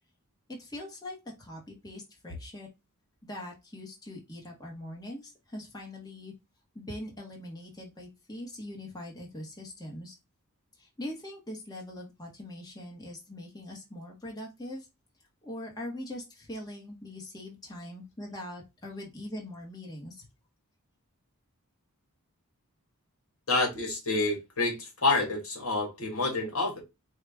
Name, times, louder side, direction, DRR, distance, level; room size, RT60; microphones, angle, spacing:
voice 1, 0.5-2.7 3.2-6.3 6.7-10.1 10.8-14.9 15.4-20.3, left 1 dB, 15° left, 1.2 m, -42 dB
voice 2, 23.5-26.8, left 3 dB, 65° left, 1.6 m, -28 dB
4.8 x 2.4 x 3.3 m
head